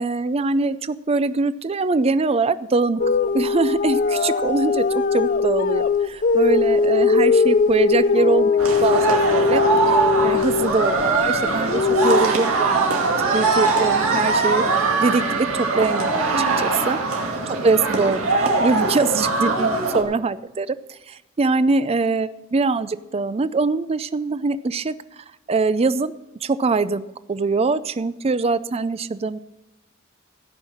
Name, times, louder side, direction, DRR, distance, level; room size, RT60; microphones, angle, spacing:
voice 1, 0.0-3.0 3.3-12.9 13.3-14.6 15.0-16.1 16.4-17.0 17.5-24.9 25.5-26.1 26.4-29.4, right 3 dB, 30° right, 15 dB, 0.4 m, -23 dB
sound 1, 3.0-12.3, left 4 dB, 40° left, 0.4 m, -20 dB
sound 2, 8.6-20.0, right 3 dB, 85° right, 2.3 m, -21 dB
17.0 x 5.7 x 6.9 m, 0.99 s
head